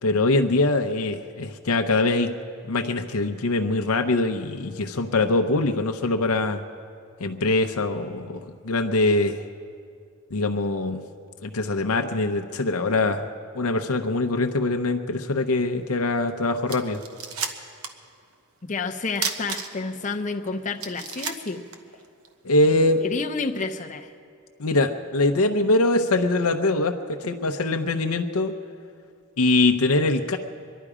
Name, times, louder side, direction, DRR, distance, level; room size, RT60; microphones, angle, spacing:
voice 1, 0.0-2.3 2.6-6.6 7.2-9.4 10.3-11.0 11.4-13.3 13.5-17.0 22.4-23.0 24.6-28.5 29.4-30.4, left 2 dB, 70° left, 5 dB, 0.7 m, -23 dB
sound 1, 16.3-16.4 16.7-18.0 18.3-18.4 19.2-20.0 20.4-20.5 20.8-22.3, right 6 dB, 70° right, 1.1 m, -32 dB
voice 2, 18.7-21.6 23.0-24.1, left 4 dB, 35° left, 4 dB, 0.8 m, -30 dB
24.5 x 11.0 x 4.9 m, 2.3 s
head